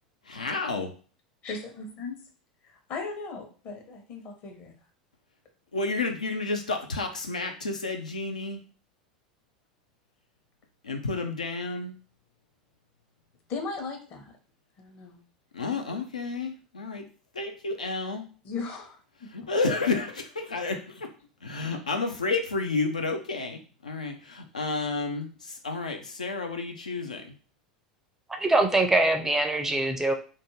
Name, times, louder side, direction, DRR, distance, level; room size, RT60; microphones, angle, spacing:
voice 1, 0.3-0.9 5.7-8.6 10.8-11.9 15.5-17.1 17.4-18.2 19.3-21.1 21.4-27.2, left 3 dB, 80° left, 4 dB, 0.4 m, -31 dB
voice 2, 1.4-2.2 2.6-4.8 13.5-14.3 14.8-15.2 15.7-16.0 18.4-19.5, left 4 dB, 40° left, 3 dB, 0.8 m, -38 dB
voice 3, 28.3-30.1, right 2 dB, 10° right, 5 dB, 0.4 m, -23 dB
2.5 x 2.2 x 3.1 m, 0.38 s
figure-of-eight pair, 80°, 4 cm